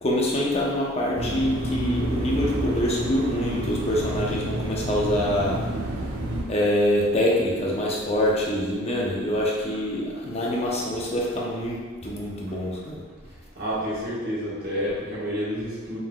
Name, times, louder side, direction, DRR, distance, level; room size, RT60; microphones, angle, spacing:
voice 1, 0.0-5.6 6.5-13.0, left 1 dB, 30° left, -3 dB, 0.7 m, -25 dB
sound 1, 1.2-6.4, right 1 dB, 75° right, 0.7 m, -29 dB
voice 2, 13.5-16.0, equal, 45° right, -9 dB, 1.4 m, -29 dB
5.2 x 3.7 x 2.3 m, 1.4 s
head